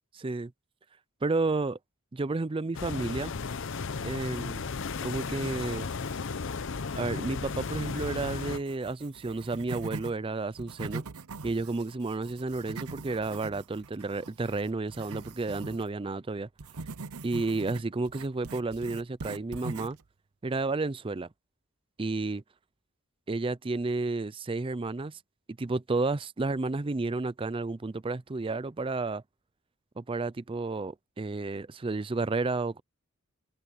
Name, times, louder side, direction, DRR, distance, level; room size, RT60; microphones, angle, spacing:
voice 1, 0.2-0.5 1.2-1.8 2.1-3.3 4.0-4.7 5.0-5.9 6.9-11.0 11.4-16.5 17.2-20.0 20.4-21.3 22.0-22.4 23.3-25.2 25.6-29.2 30.0-32.8, right 3 dB, 25° right, 0.4 m, -31 dB
sound 1, 2.7-8.6, left 4 dB, 60° left, 0.7 m, -35 dB
sound 2, 5.6-6.4 6.8-10.1 10.5-15.9 16.6-20.1, right 3 dB, 90° right, 0.8 m, -43 dB
head